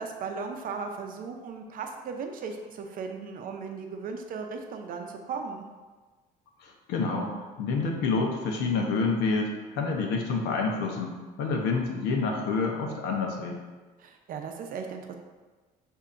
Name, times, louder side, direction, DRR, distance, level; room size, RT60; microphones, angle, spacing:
voice 1, 0.0-5.6 14.0-15.1, right 5 dB, 55° right, 4 dB, 0.6 m, -37 dB
voice 2, 6.6-7.3 7.6-13.6, left 4 dB, 85° left, 1 dB, 0.8 m, -28 dB
6.8 x 2.7 x 2.5 m, 1.3 s
cardioid pair, 110°, 17 cm